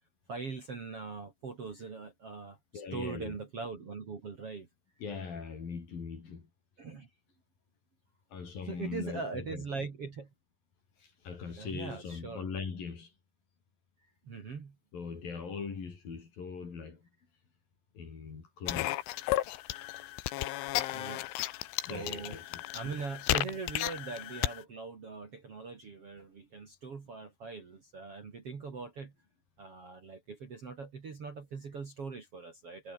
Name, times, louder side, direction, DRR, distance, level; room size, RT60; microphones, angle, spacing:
voice 1, 0.3-4.7 6.8-7.1 8.7-10.3 11.6-12.4 14.2-14.8 20.9-21.2 21.8-22.4 22.7-29.1 29.6-32.9, right 4 dB, 35° right, 3.0 m, -41 dB
voice 2, 2.7-3.4 5.0-6.5 8.3-9.6 11.0-13.1 14.9-17.1 17.9-19.0 20.7-21.0 21.8-22.6, left 5 dB, 50° left, 6.2 m, -41 dB
sound 1, 18.7-24.6, left 16 dB, 90° left, 3.7 m, -34 dB
omnidirectional pair, 5.3 m